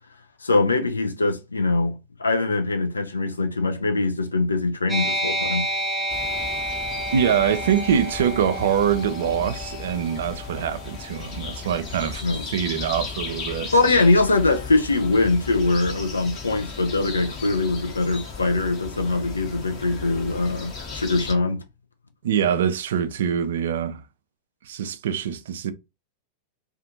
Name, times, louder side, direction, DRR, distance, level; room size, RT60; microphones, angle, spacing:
voice 1, 0.4-5.7 12.2-12.5 13.7-21.6, left 3 dB, 75° left, 0.5 m, -22 dB
sound 1, 4.9-12.0, equal, 10° right, 0.6 m, -30 dB
sound 2, 6.1-21.3, left 4 dB, 35° left, 0.9 m, -36 dB
voice 2, 7.1-12.2 12.5-13.7 22.2-24.0 24.7-25.7, right 8 dB, 60° right, 0.4 m, -24 dB
2.5 x 2.4 x 2.5 m
figure-of-eight pair, 90°, 0 cm